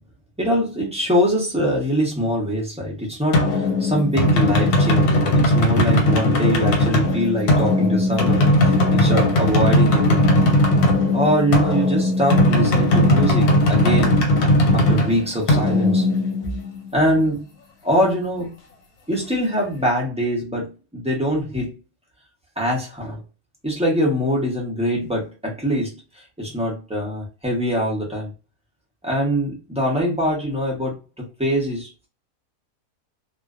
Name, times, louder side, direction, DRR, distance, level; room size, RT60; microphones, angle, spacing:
voice 1, 0.4-10.4 11.1-14.2 14.7-16.1 16.9-17.5 17.8-18.5 19.1-21.7 22.6-23.2 23.6-25.9 26.2-28.3 29.0-31.9, equal, 10° right, 0.4 m, -23 dB
sound 1, 3.3-16.9, left 1 dB, 85° left, 1.2 m, -18 dB
2.4 x 2.3 x 2.3 m
omnidirectional pair, 1.6 m